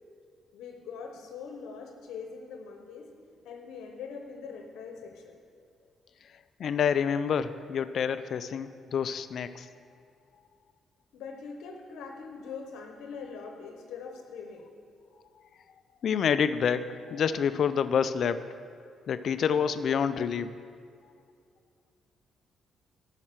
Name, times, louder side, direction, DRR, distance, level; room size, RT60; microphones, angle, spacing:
voice 1, 0.5-3.1 3.4-5.4 11.1-14.7, left 5 dB, 85° left, 3 dB, 0.9 m, -42 dB
voice 2, 6.3-9.7 16.0-18.5 19.1-20.6, left 7 dB, 60° left, 12 dB, 0.4 m, -28 dB
10.5 x 5.7 x 7.5 m, 2.4 s
cardioid pair, 90°, 0 cm